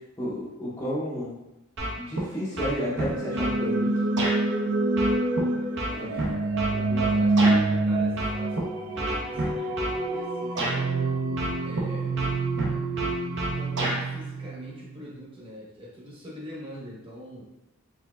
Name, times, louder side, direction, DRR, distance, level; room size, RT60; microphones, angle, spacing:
voice 1, 0.2-1.3 2.0-3.9 6.0-6.1 6.7-7.3, equal, 15° left, -8 dB, 0.6 m, -32 dB
sound 1, 1.8-2.3 2.6-3.6 4.2-4.4 5.0-7.6 8.2-8.6 9.0-10.0 10.6-10.8 11.4-11.9 12.2-14.0, right 1 dB, 55° right, 0.9 m, -29 dB
sound 2, 2.9-14.8, right 2 dB, 75° right, 0.5 m, -27 dB
voice 2, 5.9-6.6 7.2-10.9 11.6-12.2 13.5-17.4, left 1 dB, 25° right, -5 dB, 1.1 m, -43 dB
4.6 x 3.7 x 2.3 m, 0.97 s
head